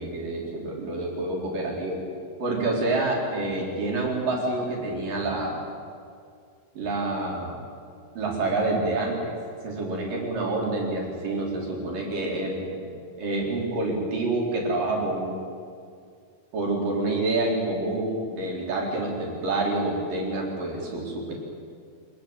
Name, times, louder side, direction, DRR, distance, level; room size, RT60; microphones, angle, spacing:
voice 1, 0.0-2.0 2.4-5.5 6.7-7.6 8.2-9.3 9.6-12.9 13.2-15.4 16.5-21.3, right 2 dB, 80° right, -2 dB, 6.3 m, -27 dB
26.0 x 20.0 x 8.3 m, 2.2 s
omnidirectional pair, 3.8 m